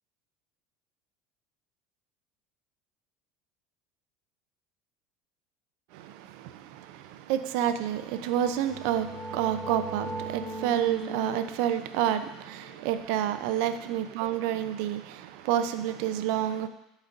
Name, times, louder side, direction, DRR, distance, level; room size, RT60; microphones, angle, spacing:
voice 1, 5.9-16.7, right 10 dB, 70° right, 10 dB, 0.5 m, -29 dB
sound 1, 8.4-13.9, right 2 dB, 10° left, 2.0 m, -40 dB
11.5 x 4.2 x 2.6 m, 0.91 s
supercardioid pair, 95°, 0 cm